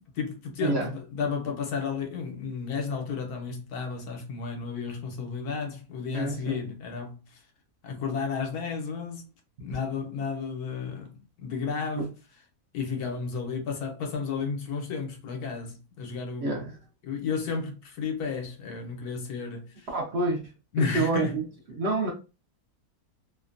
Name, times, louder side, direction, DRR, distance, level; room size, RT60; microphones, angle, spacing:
voice 1, 0.1-7.4 7.8-9.3 9.6-12.1 12.7-16.7 17.0-19.9 20.7-21.4, left 5 dB, 80° left, 1.3 m, -32 dB
voice 2, 6.1-6.6 11.9-12.0 16.4-16.8 19.9-20.4 20.8-21.4 21.7-22.1, right 3 dB, 55° right, 0.8 m, -28 dB
3.0 x 2.2 x 2.4 m
omnidirectional pair, 1.6 m